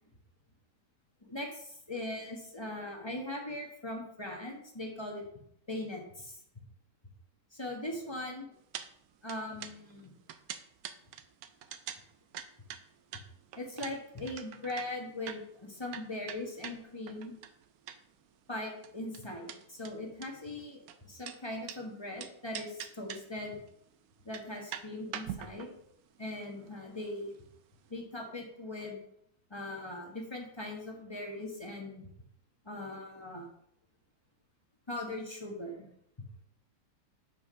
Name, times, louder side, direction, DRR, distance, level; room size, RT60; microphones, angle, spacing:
voice 1, 1.2-5.2 5.7-6.3 7.5-8.5 9.2-10.1 13.5-17.3 18.5-23.6 24.2-25.7 26.2-27.3 27.9-29.0 29.5-32.1 32.6-33.5 34.9-35.9, left 1 dB, 20° left, 0 dB, 1.1 m, -40 dB
sound 1, 8.7-8.9 9.1-18.2 18.5-21.8 22.2-23.4 23.7-23.8 24.2-27.5 27.8-27.9, right 10 dB, 70° right, 0.9 m, -44 dB
5.7 x 4.8 x 5.5 m, 0.70 s
omnidirectional pair, 1.8 m